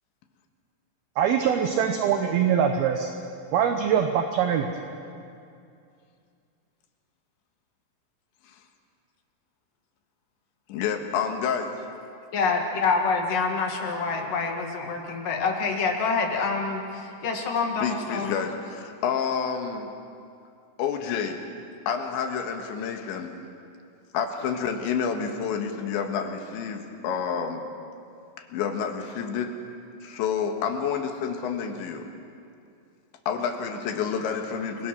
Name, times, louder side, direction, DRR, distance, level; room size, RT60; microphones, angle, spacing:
voice 1, 1.2-3.1 3.5-4.7, right 8 dB, 75° right, 5 dB, 2.3 m, -23 dB
voice 2, 10.7-11.7 17.8-19.9 20.8-21.4 21.9-23.4 24.1-27.7 28.4-29.6 30.0-32.0 33.3-34.9, left 7 dB, 75° left, 5 dB, 3.6 m, -29 dB
voice 3, 12.3-18.4, left 4 dB, 55° left, 2 dB, 3.1 m, -26 dB
29.0 x 22.5 x 6.1 m, 2.5 s
omnidirectional pair, 5.7 m